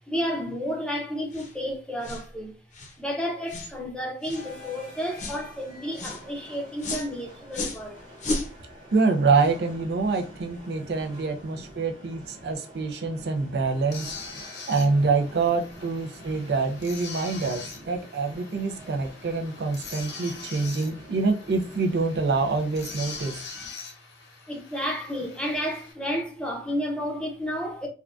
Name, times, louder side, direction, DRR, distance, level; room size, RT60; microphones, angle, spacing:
voice 1, 0.0-2.6 3.0-8.0 10.7-10.9 11.5-11.7 12.4-12.5 13.1-13.5 13.9-14.0 14.3-14.4 17.6-17.7 18.8-19.0 19.3-19.7 20.5-20.7 24.5-27.9, equal, 5° left, 0.6 m, -32 dB
sound 1, 1.3-1.5 2.0-2.3 2.7-2.9 3.5-3.7 4.2-4.5 5.2-5.4 5.9-6.2 6.8-7.1 7.5-7.8 8.2-8.5, left 2 dB, 40° left, 0.6 m, -33 dB
sound 2, 4.3-23.4, equal, 25° right, 0.9 m, -49 dB
voice 2, 8.9-14.1 14.7-23.4, right 4 dB, 65° right, 0.4 m, -26 dB
sound 3, 13.9-25.9, left 4 dB, 75° left, 0.8 m, -43 dB
3.6 x 2.2 x 2.4 m
head